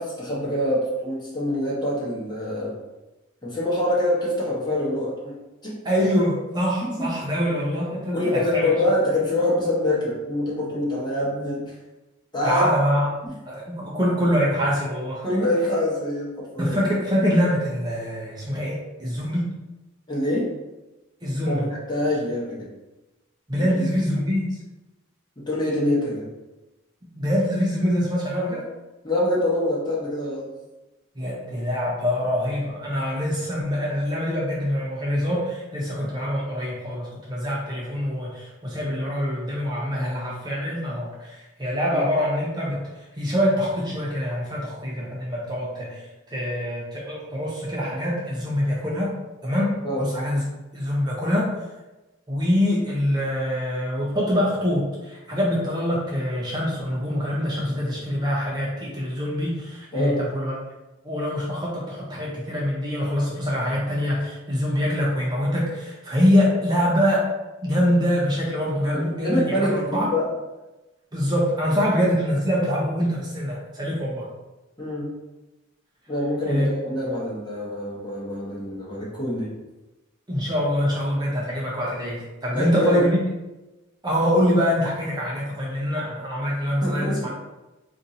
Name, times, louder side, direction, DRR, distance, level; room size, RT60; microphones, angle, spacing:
voice 1, 0.0-2.8 3.4-5.3 5.6-5.8 6.8-7.1 8.1-11.7 12.3-12.7 15.2-16.8 20.1-20.5 21.5-22.7 23.6-23.7 25.5-26.3 29.0-30.5 41.9-42.0 49.8-50.0 59.9-60.2 69.2-70.3 74.8-75.1 76.1-79.5 82.5-83.0 86.8-87.3, left 1 dB, 20° left, -6 dB, 0.9 m, -25 dB
voice 2, 5.8-8.7 12.4-13.1 13.5-15.2 16.6-19.5 21.2-21.7 23.5-24.5 27.1-28.6 31.2-42.8 43.2-46.0 46.3-49.1 49.4-51.5 52.3-60.5 61.0-67.3 67.6-70.1 71.1-74.3 76.5-76.7 80.3-83.2 84.0-87.3, equal, 20° right, -5 dB, 0.6 m, -24 dB
2.6 x 2.5 x 4.1 m, 1.0 s
head